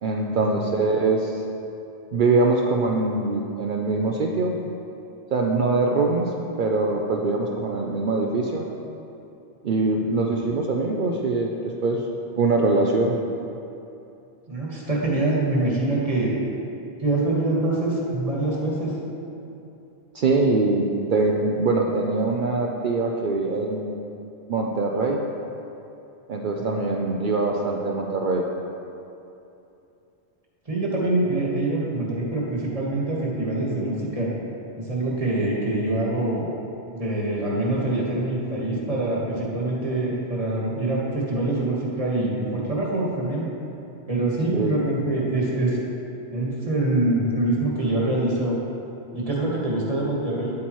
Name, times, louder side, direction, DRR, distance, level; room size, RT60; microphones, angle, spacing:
voice 1, 0.0-1.4 2.1-4.5 5.3-6.3 6.6-8.6 9.6-11.5 11.8-12.0 12.4-13.2 20.1-24.0 24.5-25.2 26.3-28.5 44.5-44.7, right 3 dB, 60° right, 0 dB, 0.7 m, -23 dB
voice 2, 14.5-16.4 17.0-18.9 26.6-26.8 30.6-34.3 34.8-36.5 36.9-43.5 44.1-45.8 46.3-48.6 49.1-50.5, right 2 dB, 35° right, -4 dB, 1.6 m, -25 dB
9.7 x 8.3 x 3.1 m, 2.8 s
omnidirectional pair, 1.1 m